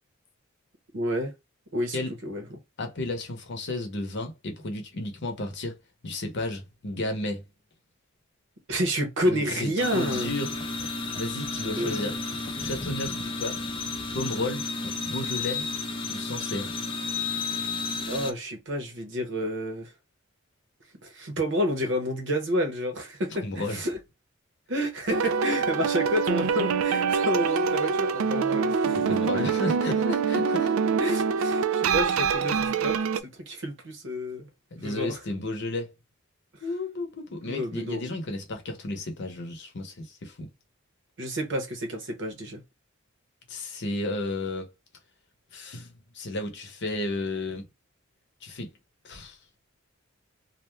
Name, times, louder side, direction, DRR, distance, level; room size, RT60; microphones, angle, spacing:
voice 1, 0.9-1.3 1.7-2.5 8.7-10.3 11.8-12.2 18.0-19.9 21.0-24.0 24.7-29.0 31.0-33.0 33.2-34.5 34.8-35.2 37.5-38.2 41.2-42.6, equal, 60° right, 0.9 m, -29 dB
voice 2, 2.8-5.8 6.0-7.4 9.3-10.5 11.2-12.1 12.6-13.6 14.1-14.7 15.0-15.6 16.0-16.7 23.4-23.8 28.9-30.7 34.7-35.9 36.6-40.5 43.5-44.7 45.5-47.6 48.4-48.7 49.0-49.4, left 2 dB, 55° left, 0.8 m, -33 dB
AC Compressor, 9.8-18.3, left 3 dB, 25° left, 0.4 m, -32 dB
sound 1, 25.1-33.2, right 6 dB, 80° right, 0.3 m, -25 dB
2.4 x 2.2 x 3.1 m
head